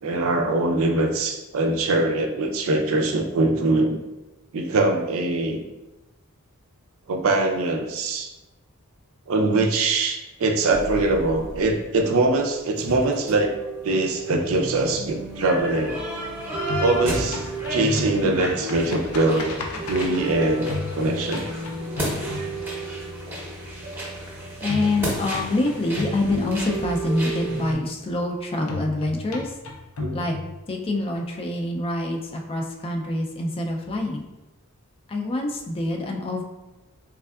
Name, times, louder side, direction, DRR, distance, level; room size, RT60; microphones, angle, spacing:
voice 1, 0.0-4.0 4.5-5.6 7.1-8.3 9.3-13.6 13.8-16.0 16.8-19.6 19.8-21.5 30.0-30.2, right 2 dB, 65° right, 3 dB, 0.5 m, -22 dB
sound 1, 10.7-27.7, right 1 dB, 10° right, 0.7 m, -32 dB
sound 2, 14.3-16.3 16.6-23.0 24.7-27.0 28.7-31.0, left 3 dB, 80° left, 0.5 m, -34 dB
voice 2, 24.6-29.5 30.1-30.3 30.7-34.3 35.1-36.4, left 2 dB, 25° left, 2 dB, 0.3 m, -26 dB
3.5 x 3.3 x 2.3 m, 1.0 s
head